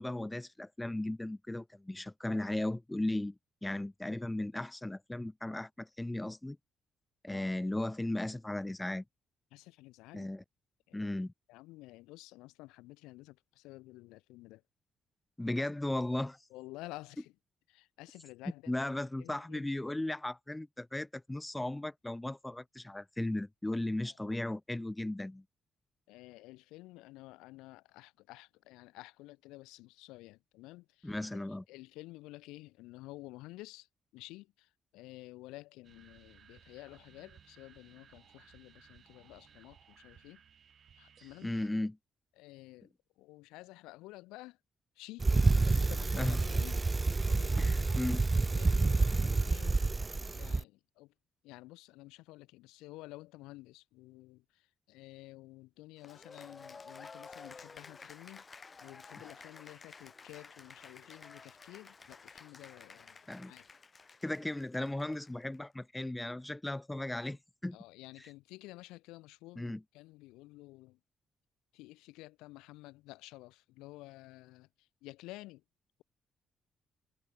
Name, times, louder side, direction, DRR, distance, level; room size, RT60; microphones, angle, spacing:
voice 1, 0.0-3.3 3.6-6.6 7.2-9.0 10.1-10.4 10.9-11.3 15.4-16.4 18.7-25.4 31.0-31.6 41.4-42.0 46.2-46.4 47.6-48.2 63.3-63.5 64.2-67.8 69.6-69.8, left 1 dB, 15° left, 1.1 m, -36 dB
voice 2, 9.5-10.3 10.9-11.0 11.5-14.6 16.5-17.3 17.7-18.7 19.2-19.6 23.7-24.3 26.1-31.1 31.7-33.9 34.1-40.4 41.0-41.5 42.4-44.6 45.0-46.8 47.2-48.2 48.6-49.8 50.3-51.1 51.4-63.7 67.2-67.3 67.7-71.0 71.7-75.6, left 20 dB, 80° left, 1.9 m, -52 dB
sound 1, 35.8-41.7, right 8 dB, 60° right, 2.0 m, -61 dB
Bicycle, 45.2-50.6, right 3 dB, 30° right, 0.3 m, -28 dB
Cheering / Applause, 56.0-65.6, left 4 dB, 40° left, 1.0 m, -52 dB
hypercardioid pair, 50°, 0 cm